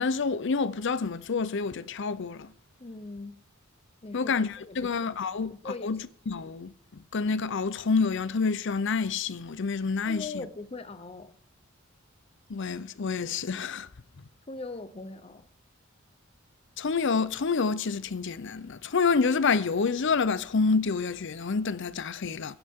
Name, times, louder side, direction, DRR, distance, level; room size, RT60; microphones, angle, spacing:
voice 1, 0.0-2.5 4.1-10.4 12.5-13.9 16.8-22.5, left 4 dB, 60° left, 0.6 m, -28 dB
voice 2, 2.8-3.4 4.0-4.3 4.6-4.9 5.3-5.9 10.0-11.4 14.5-15.5, left 3 dB, 30° left, 0.8 m, -40 dB
20.0 x 9.6 x 3.7 m
head